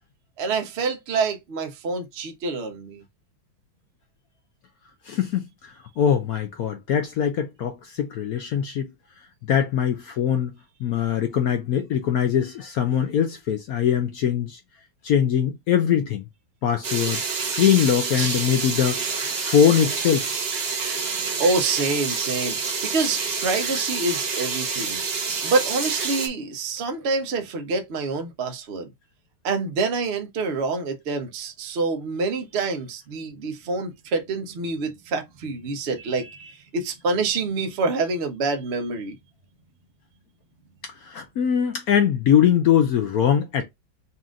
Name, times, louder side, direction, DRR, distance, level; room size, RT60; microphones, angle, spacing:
voice 1, 0.4-3.0 21.1-25.0 25.4-28.9 29.4-39.1, right 3 dB, 85° right, 0.5 m, -27 dB
voice 2, 5.1-5.5 6.0-8.9 9.5-10.5 10.8-14.6 15.0-16.2 16.6-19.0 19.4-20.3 41.0-43.6, left 9 dB, 75° left, 0.8 m, -22 dB
sound 1, 16.8-26.3, right 5 dB, 45° right, 0.8 m, -28 dB
4.2 x 2.5 x 3.7 m
omnidirectional pair, 2.2 m